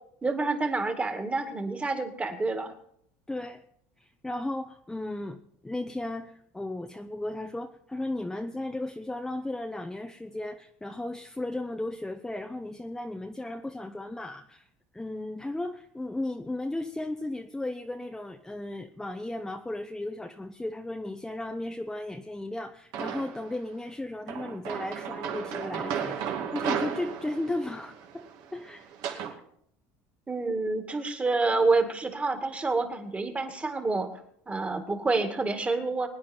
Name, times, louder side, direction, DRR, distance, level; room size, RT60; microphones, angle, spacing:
voice 1, 0.2-2.7 30.3-34.1 34.5-36.1, right 3 dB, 20° right, 6 dB, 2.2 m, -28 dB
voice 2, 3.3-3.6 4.0-14.7 14.9-28.2 28.5-28.9, left 2 dB, 5° left, 4 dB, 0.8 m, -35 dB
sound 1, 22.9-23.5 24.3-29.4, right 8 dB, 65° right, 2.5 m, -34 dB
22.5 x 9.7 x 4.5 m, 0.69 s
supercardioid pair, 115°, 8 cm